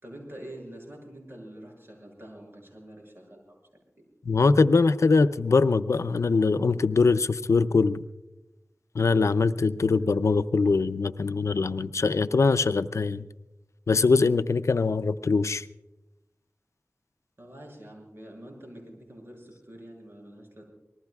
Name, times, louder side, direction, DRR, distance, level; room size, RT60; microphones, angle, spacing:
voice 1, 0.0-3.6 17.4-20.6, right 1 dB, 50° right, 0 dB, 7.0 m, -45 dB
voice 2, 4.3-8.0 9.0-13.2 13.9-15.7, left 4 dB, 75° left, 13 dB, 0.5 m, -22 dB
26.5 x 20.0 x 2.4 m, 0.96 s
wide cardioid pair, 70°, 5 cm